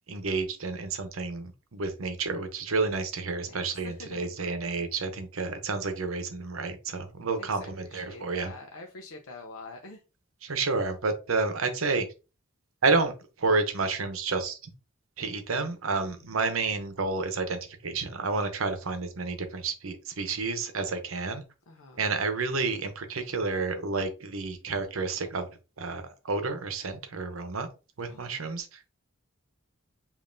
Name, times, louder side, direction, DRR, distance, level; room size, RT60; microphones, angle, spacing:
voice 1, 0.1-8.5 10.4-12.1 12.8-14.6 15.2-21.4 22.0-25.5 25.8-27.7 28.0-28.8, right 4 dB, 75° right, 8 dB, 0.8 m, -30 dB
voice 2, 3.5-4.2 7.4-10.0 16.1-16.3 21.7-22.1 28.0-28.4, left 2 dB, 85° left, 3 dB, 0.6 m, -46 dB
5.2 x 2.6 x 2.6 m, 0.31 s
head